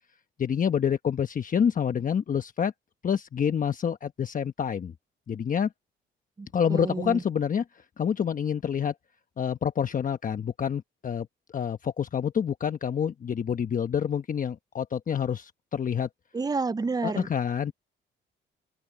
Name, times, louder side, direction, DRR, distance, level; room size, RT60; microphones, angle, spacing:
voice 1, 0.4-2.7 3.0-4.9 5.3-5.7 6.5-8.9 9.4-16.1 17.0-17.7, left 7 dB, 45° left, 1.1 m, -27 dB
voice 2, 6.4-7.2 16.3-17.3, right 4 dB, 20° right, 0.6 m, -30 dB
open air
cardioid pair, 90°, 20 cm